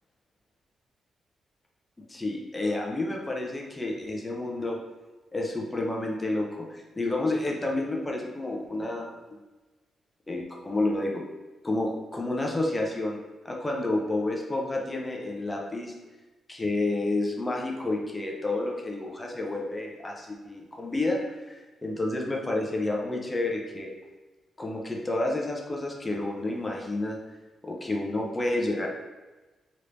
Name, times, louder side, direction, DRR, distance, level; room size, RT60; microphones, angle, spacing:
voice 1, 2.1-4.8 5.3-9.1 10.3-11.2 11.6-13.2 13.4-15.9 16.5-23.9 24.6-27.2 27.6-28.9, left 2 dB, 25° left, -1 dB, 0.6 m, -30 dB
3.2 x 3.0 x 2.6 m, 1.2 s
cardioid pair, 65°, 0 cm